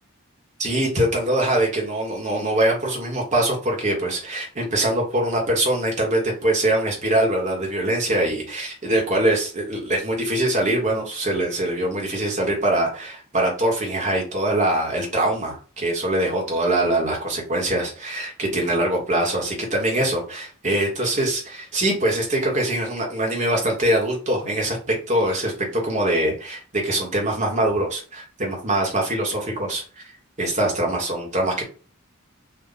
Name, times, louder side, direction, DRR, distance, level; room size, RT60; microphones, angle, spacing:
voice 1, 0.6-30.0 30.4-31.6, right 1 dB, 35° right, 0 dB, 1.3 m, -23 dB
3.4 x 2.5 x 3.9 m, 0.37 s
head